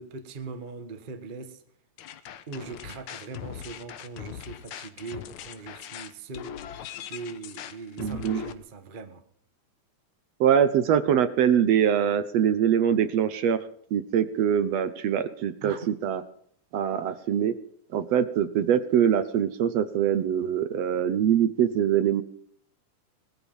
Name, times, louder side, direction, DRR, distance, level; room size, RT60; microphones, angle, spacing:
voice 1, 0.0-1.6 2.5-9.2 15.6-15.9, right 4 dB, 30° right, 0.9 m, -40 dB
sound 1, 2.0-8.5, left 10 dB, 75° left, 2.4 m, -40 dB
voice 2, 8.0-8.4 10.4-13.6 13.9-16.2 16.7-17.5 17.9-22.2, right 9 dB, 65° right, 1.9 m, -23 dB
19.5 x 13.5 x 5.5 m
omnidirectional pair, 3.5 m